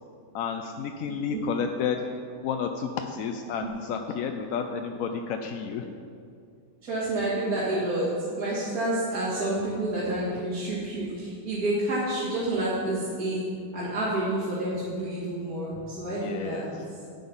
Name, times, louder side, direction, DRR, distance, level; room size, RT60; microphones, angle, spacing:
voice 1, 0.3-2.1 2.4-5.9 16.1-16.7, left 6 dB, 65° left, 5 dB, 0.9 m, -31 dB
voice 2, 1.0-1.4 3.6-3.7 6.8-13.4 13.7-16.7, right 1 dB, 60° right, -10 dB, 2.6 m, -29 dB
9.6 x 8.7 x 5.5 m, 2.4 s
omnidirectional pair, 1.8 m